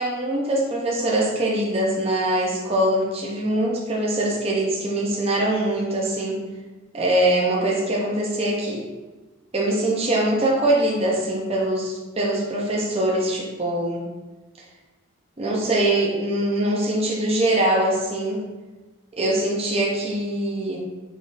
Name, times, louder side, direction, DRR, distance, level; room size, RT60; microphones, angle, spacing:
voice 1, 0.0-6.4 6.9-8.9 9.5-14.0 15.4-18.4 19.2-20.8, right 1 dB, 30° right, -3 dB, 0.5 m, -23 dB
3.9 x 3.5 x 2.5 m, 1.2 s
head